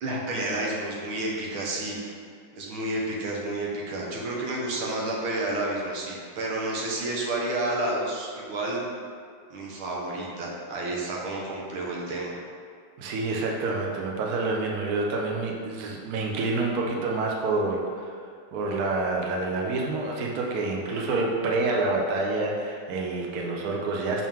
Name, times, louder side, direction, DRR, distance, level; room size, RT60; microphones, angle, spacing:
voice 1, 0.0-2.1 2.6-8.8 9.5-12.4, right 2 dB, 90° right, -3 dB, 1.8 m, -30 dB
voice 2, 13.0-18.1 18.5-24.3, right 3 dB, 60° right, -1 dB, 1.0 m, -28 dB
5.8 x 4.6 x 3.6 m, 2.2 s
omnidirectional pair, 2.2 m